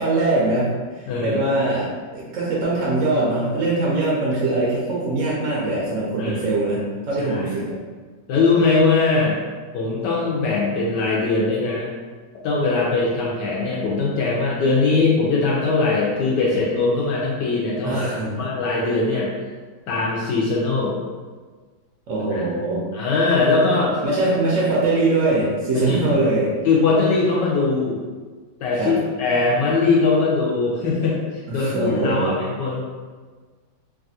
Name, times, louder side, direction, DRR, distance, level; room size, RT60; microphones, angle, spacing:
voice 1, 0.0-7.7 17.8-18.3 22.1-22.9 24.0-26.5 28.8-29.0 31.5-32.4, right 2 dB, 70° right, -5 dB, 0.7 m, -22 dB
voice 2, 1.1-1.4 6.2-6.4 7.3-7.5 8.3-9.4 9.7-11.9 12.4-18.1 18.3-19.3 19.9-21.0 22.3-22.4 22.9-24.0 25.7-26.0 26.6-28.0 28.6-32.8, left 3 dB, 75° left, -4 dB, 1.2 m, -21 dB
3.3 x 2.4 x 2.6 m, 1.4 s
omnidirectional pair, 2.0 m